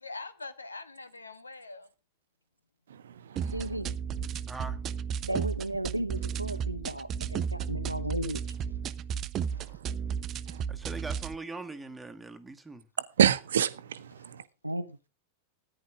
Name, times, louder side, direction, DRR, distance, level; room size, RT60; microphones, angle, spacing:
voice 1, 0.0-1.9 9.5-9.8, left 3 dB, 80° left, 1.5 m, -43 dB
voice 2, 2.9-3.8 9.5-9.9 10.4-10.6 13.0-14.5, right 9 dB, 65° right, 1.0 m, -29 dB
sound 1, 3.4-11.4, right 7 dB, 30° right, 0.7 m, -34 dB
voice 3, 3.5-4.0 5.2-8.4 14.6-14.8, right 1 dB, 85° right, 0.9 m, -34 dB
voice 4, 4.5-4.8 9.6-9.8 10.7-12.9, right 3 dB, 10° right, 1.6 m, -41 dB
14.0 x 10.0 x 4.9 m
figure-of-eight pair, 90°, 0 cm